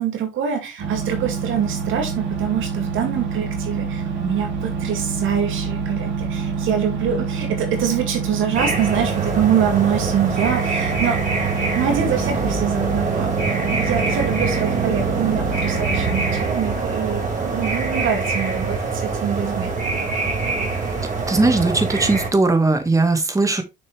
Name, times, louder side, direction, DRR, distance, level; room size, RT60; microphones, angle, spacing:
voice 1, 0.0-11.2 11.7-19.7, right 8 dB, 85° right, 2.4 m, -25 dB
sound 1, 0.8-16.5, right 5 dB, 65° right, 3.4 m, -27 dB
sound 2, 8.5-22.3, right 4 dB, 40° right, 4.3 m, -24 dB
voice 2, 21.3-23.6, right 3 dB, 15° right, 1.7 m, -18 dB
6.6 x 6.6 x 3.3 m
cardioid pair, 90°, 20 cm